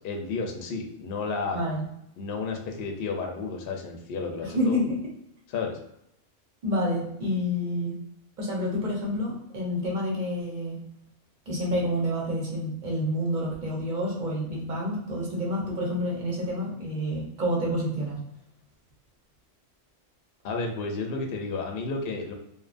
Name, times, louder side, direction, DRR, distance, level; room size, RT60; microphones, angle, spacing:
voice 1, 0.0-1.6 2.2-4.8 5.5-5.8 20.4-22.3, left 4 dB, 60° left, 2 dB, 0.6 m, -32 dB
voice 2, 1.5-1.8 4.4-5.0 6.6-8.0 8.4-10.8 11.5-18.2, equal, 45° right, -3 dB, 0.8 m, -28 dB
2.7 x 2.2 x 2.4 m, 0.78 s
omnidirectional pair, 1.3 m